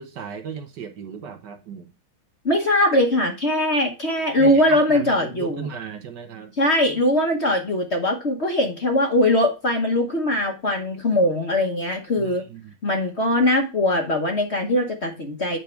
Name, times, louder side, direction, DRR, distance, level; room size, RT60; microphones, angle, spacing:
voice 1, 0.0-1.9 4.4-6.5 12.2-12.7, right 7 dB, 65° right, 1.4 m, -36 dB
voice 2, 2.4-5.7 6.6-12.5 12.8-15.6, left 1 dB, 40° left, 1.2 m, -21 dB
8.4 x 5.2 x 4.5 m
omnidirectional pair, 2.2 m